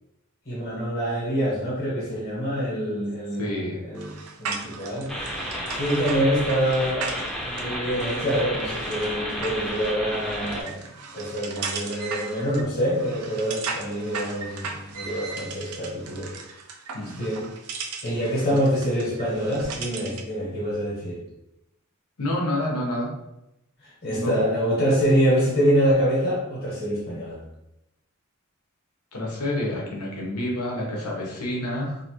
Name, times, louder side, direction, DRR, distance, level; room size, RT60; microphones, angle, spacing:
voice 1, 0.5-4.1 4.4-5.1 5.7-7.1 7.4-10.8 11.1-16.3 17.2-17.4 18.0-21.2 23.8-27.4, equal, 45° left, -6 dB, 1.1 m, -25 dB
voice 2, 3.3-3.8 16.9-17.2 22.2-23.1 24.0-24.4 29.1-32.0, left 1 dB, 90° left, -2 dB, 0.9 m, -28 dB
sound 1, 3.9-20.3, right 5 dB, 90° right, 0.5 m, -37 dB
sound 2, 5.1-10.6, equal, ahead, 0.6 m, -32 dB
2.8 x 2.5 x 2.9 m, 0.87 s
head